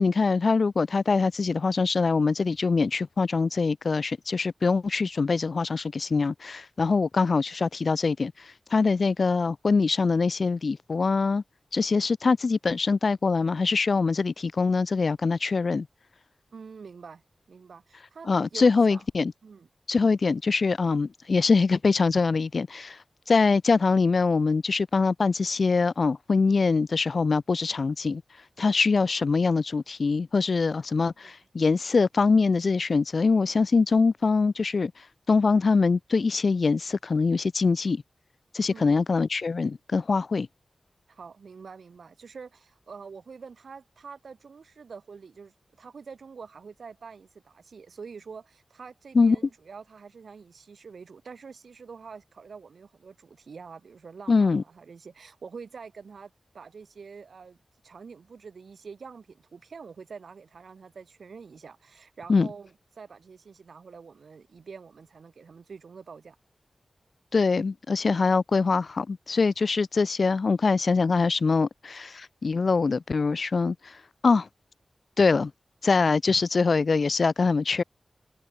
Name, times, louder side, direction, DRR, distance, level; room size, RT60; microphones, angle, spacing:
voice 1, 0.0-11.4 11.7-15.9 18.3-19.3 19.9-23.0 23.3-28.2 28.6-34.9 35.3-38.0 38.5-40.5 49.1-49.4 54.3-54.6 62.3-62.5 67.3-74.0 74.2-74.5 75.2-75.5 75.8-77.8, left 4 dB, 60° left, 0.4 m, -23 dB
voice 2, 16.5-17.2 17.5-19.0 19.4-19.7 30.9-31.3 38.7-39.1 41.1-57.6 57.8-66.4, right 5 dB, 80° right, 3.3 m, -46 dB
wide cardioid pair, 100°, 0 cm